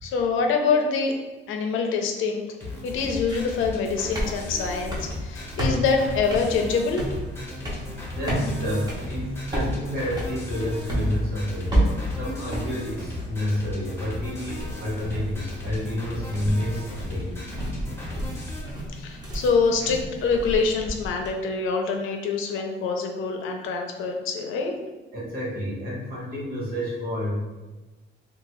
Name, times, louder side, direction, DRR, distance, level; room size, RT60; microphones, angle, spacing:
voice 1, 0.0-1.1 1.5-2.5 2.8-7.0 18.9-24.7, left 4 dB, 75° left, 3 dB, 0.5 m, -25 dB
sound 1, 2.6-18.6, left 2 dB, 10° left, 0.7 m, -36 dB
sound 2, 2.9-21.3, equal, 20° right, 0.6 m, -32 dB
voice 2, 8.1-17.3 25.1-27.5, left 1 dB, 45° right, -6 dB, 1.2 m, -30 dB
2.7 x 2.3 x 3.0 m, 1.2 s
cardioid pair, 155°, 21 cm